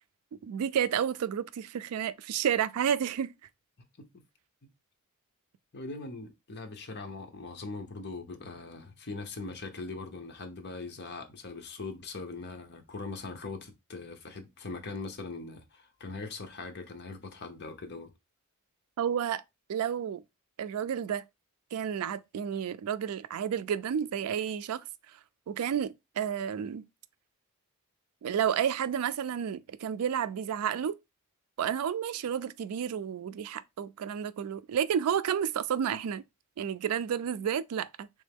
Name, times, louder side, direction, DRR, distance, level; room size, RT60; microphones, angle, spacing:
voice 1, 0.3-3.3 19.0-19.4 19.7-20.2 20.6-21.2 21.7-24.8 25.5-26.8 28.2-30.9 31.6-36.2 36.6-38.1, right 8 dB, 85° right, 0.3 m, -31 dB
voice 2, 3.8-4.2 5.7-18.1, left 3 dB, 50° left, 0.8 m, -41 dB
3.4 x 3.2 x 3.4 m
head